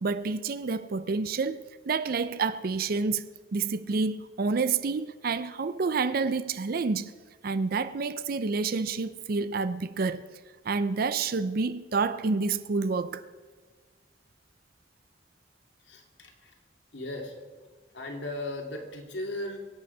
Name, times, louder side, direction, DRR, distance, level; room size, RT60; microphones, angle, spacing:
voice 1, 0.0-7.1 7.4-10.2 10.7-13.2, right 4 dB, 55° right, 0.5 m, -29 dB
voice 2, 15.8-16.6 16.9-17.4 17.9-19.6, left 1 dB, 75° left, 2.4 m, -37 dB
23.0 x 8.5 x 5.4 m
head